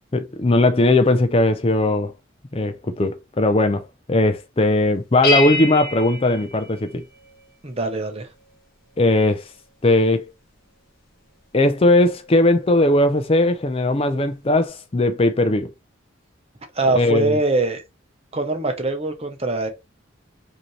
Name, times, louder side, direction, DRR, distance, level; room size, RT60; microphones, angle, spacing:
voice 1, 0.1-2.1 2.5-7.0 9.0-9.5 9.8-10.2 11.5-15.7 16.9-17.4, left 2 dB, 30° left, 0.5 m, -18 dB
sound 1, 5.2-7.4, left 3 dB, 45° left, 1.3 m, -26 dB
voice 2, 7.6-8.3 16.7-17.8 18.3-19.7, right 2 dB, 30° right, 0.9 m, -23 dB
5.0 x 2.9 x 3.2 m
head